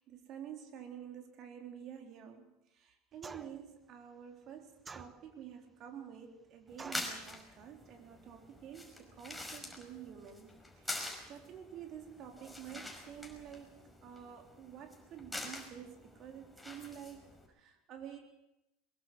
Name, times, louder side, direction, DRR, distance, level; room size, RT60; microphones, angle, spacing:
voice 1, 0.0-2.5 2.8-11.0 11.3-13.7 14.0-17.2 17.5-18.2, right 9 dB, 45° right, 4 dB, 3.9 m, -49 dB
sound 1, 3.2-3.7 4.8-5.5 6.8-7.2, right 4 dB, 20° right, 1.1 m, -48 dB
sound 2, 6.7-17.5, left 1 dB, 5° left, 5.3 m, -46 dB
22.0 x 21.5 x 6.3 m, 0.92 s
figure-of-eight pair, 75°, 0 cm